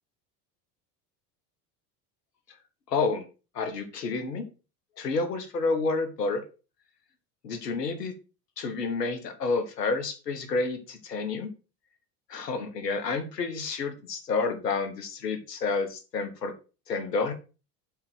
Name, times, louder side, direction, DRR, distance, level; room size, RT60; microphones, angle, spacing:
voice 1, 2.9-3.2 3.5-4.5 5.0-6.4 7.4-8.1 8.6-11.5 12.3-16.5 16.9-17.3, left 4 dB, 90° left, 7 dB, 1.4 m, -29 dB
5.6 x 4.6 x 6.1 m, 0.33 s
hypercardioid pair, 75°, 47 cm